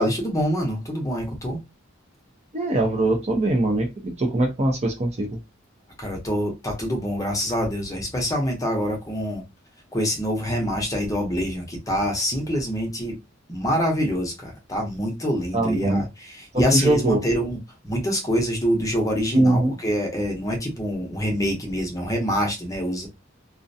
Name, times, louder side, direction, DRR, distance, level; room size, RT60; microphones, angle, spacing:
voice 1, 0.0-1.6 6.0-9.4 9.9-13.2 13.5-17.6 17.8-23.1, equal, 15° left, 0.7 m, -25 dB
voice 2, 2.5-5.4 15.5-16.0 16.5-17.2 19.3-19.7, right 1 dB, 35° right, 0.5 m, -22 dB
2.4 x 2.1 x 2.6 m
head